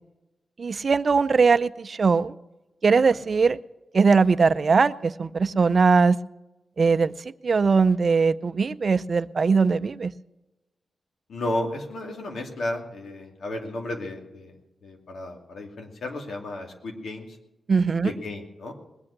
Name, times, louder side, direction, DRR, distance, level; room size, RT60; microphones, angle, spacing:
voice 1, 0.6-2.3 2.8-3.6 3.9-6.2 6.8-7.1 7.4-10.1 17.7-18.1, right 5 dB, 55° right, 14 dB, 0.5 m, -20 dB
voice 2, 11.3-14.5 14.8-17.4 18.0-18.7, left 1 dB, 75° left, 2 dB, 2.7 m, -33 dB
20.5 x 8.5 x 6.6 m, 1.0 s
cardioid pair, 75°, 0 cm